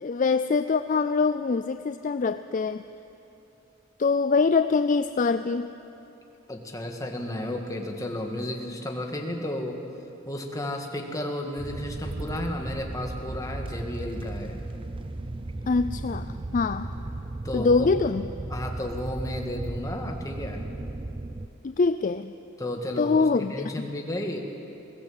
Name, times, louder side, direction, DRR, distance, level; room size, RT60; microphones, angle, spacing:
voice 1, 0.0-2.8 4.0-5.7 15.7-16.9 17.5-18.3 21.6-22.3 23.0-23.9, left 4 dB, 40° left, 11 dB, 0.4 m, -24 dB
voice 2, 6.5-9.8 10.3-14.6 17.4-17.9 18.5-20.6 22.6-24.4, left 1 dB, 15° left, 2 dB, 1.7 m, -33 dB
sound 1, 11.6-21.5, right 2 dB, 25° right, 0.6 m, -36 dB
21.5 x 16.5 x 7.9 m, 2.9 s
head